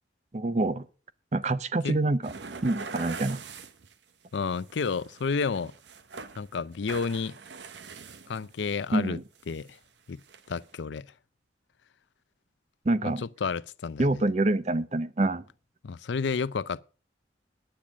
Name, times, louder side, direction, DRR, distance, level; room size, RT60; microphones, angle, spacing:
voice 1, 0.3-0.9 1.3-2.3 2.6-3.4 8.9-9.2 12.9-13.2 14.0-15.4, right 2 dB, 40° right, 0.6 m, -26 dB
sound 1, 2.2-3.9 4.3-6.5 6.7-8.7 9.4-9.8 10.2-10.7, right 4 dB, 75° right, 0.8 m, -43 dB
voice 2, 4.3-5.7 6.4-7.4 8.3-9.2 9.5-9.8 10.1-10.2 10.5-11.1 13.0-14.2 15.8-16.8, left 5 dB, 80° left, 0.5 m, -31 dB
10.0 x 8.9 x 6.2 m
head